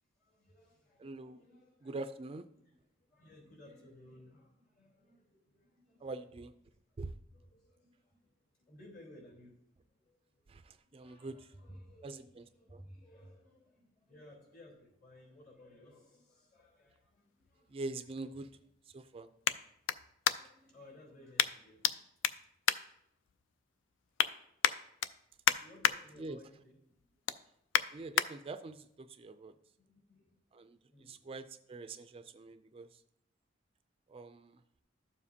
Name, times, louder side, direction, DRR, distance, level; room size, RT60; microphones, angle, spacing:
voice 1, 0.2-2.0 2.5-6.1 6.9-8.3 8.7-9.6 9.9-10.5 10.8-17.8 20.3-22.0 25.6-27.0 27.2-27.4 29.8-30.4 30.9-31.3, left 1 dB, 50° left, -3 dB, 3.5 m, -58 dB
voice 2, 1.0-1.4 1.8-2.4 6.0-6.5 7.0-7.1 10.5-11.5 12.0-12.8 17.7-18.5 18.9-19.3 26.2-26.4 27.9-29.5 30.5-33.0 34.1-34.6, right 3 dB, 30° right, 10 dB, 0.3 m, -44 dB
sound 1, 16.6-20.7 21.4-21.9 22.2-23.5 23.9-24.3 24.6-26.0 26.4-26.6 27.0-28.3 28.8-28.9, left 9 dB, 85° left, 0.4 m, -32 dB
12.5 x 7.1 x 2.8 m, 0.75 s
head